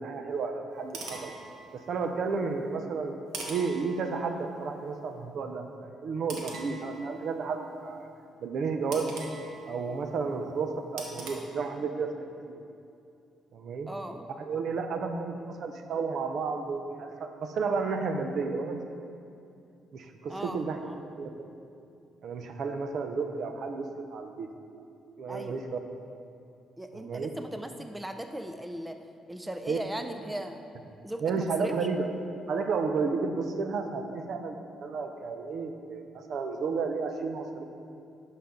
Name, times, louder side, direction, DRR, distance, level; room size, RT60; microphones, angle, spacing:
voice 1, 0.0-1.3 1.7-8.1 8.4-9.2 9.7-12.6 13.5-13.9 14.5-18.8 19.9-20.8 21.2-21.3 22.2-24.5 25.2-25.7 26.9-27.3 29.7-29.8 31.2-32.1 32.5-37.6, right 4 dB, 65° right, 6 dB, 0.7 m, -32 dB
sound 1, 0.7-2.2 3.3-4.6 6.3-7.5 8.9-10.2 11.0-11.3, right 3 dB, 85° right, 1.1 m, -43 dB
voice 2, 13.9-14.3 20.3-21.0 25.3-25.7 26.8-29.0 29.3-30.7 31.0-31.7, right 1 dB, 10° right, 7 dB, 0.5 m, -38 dB
11.0 x 5.8 x 3.8 m, 2.5 s
cardioid pair, 90°, 0 cm